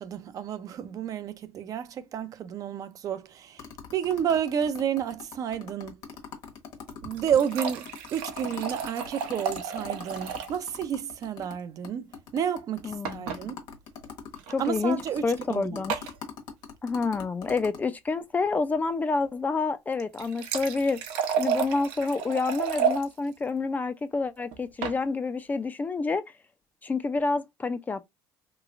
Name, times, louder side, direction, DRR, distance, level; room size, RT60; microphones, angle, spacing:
voice 1, 0.0-3.7 3.9-6.0 7.0-12.1 12.3-13.6 14.6-15.8, right 8 dB, 45° right, 0.4 m, -30 dB
sound 1, 3.6-11.6 11.8-11.9 12.1-17.8, left 7 dB, 60° left, 1.1 m, -42 dB
sound 2, 6.9-10.6 10.9-11.0 11.2-11.3 13.0-13.4 14.4-14.5 15.9-16.2 19.9-23.0 24.5-25.0, right 7 dB, 85° right, 0.7 m, -31 dB
voice 2, 12.8-13.4 14.5-15.0 15.2-15.9 16.8-21.0 21.4-26.3 26.8-28.0, left 4 dB, 20° left, 0.4 m, -28 dB
3.1 x 2.9 x 2.4 m
supercardioid pair, 110°, 8 cm